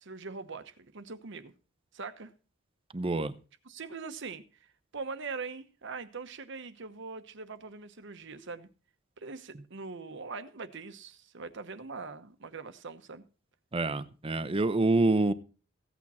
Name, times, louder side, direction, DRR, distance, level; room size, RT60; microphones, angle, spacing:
voice 1, 0.0-1.5 1.9-2.3 3.6-4.4 4.9-8.7 9.2-13.2, right 4 dB, 65° right, 1.0 m, -42 dB
voice 2, 2.9-3.3 13.7-15.3, right 2 dB, 30° right, 0.7 m, -26 dB
15.5 x 8.7 x 4.2 m
head